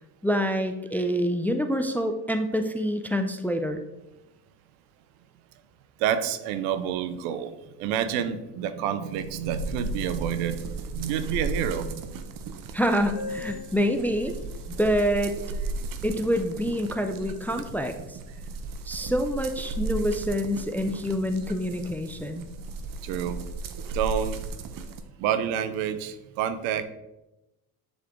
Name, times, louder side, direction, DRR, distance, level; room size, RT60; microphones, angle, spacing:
voice 1, 0.2-3.8 12.7-14.3 14.7-15.4 16.0-18.2 18.8-22.5, equal, 5° left, 6 dB, 0.4 m, -26 dB
voice 2, 6.0-12.1 23.0-23.4 23.9-24.4 25.2-26.8, right 9 dB, 80° right, 11 dB, 0.7 m, -28 dB
sound 1, 9.1-25.0, right 3 dB, 45° right, 0.7 m, -36 dB
sound 2, 13.2-16.7, left 3 dB, 40° left, 1.2 m, -43 dB
7.1 x 3.7 x 3.6 m, 0.95 s
supercardioid pair, 70°, 46 cm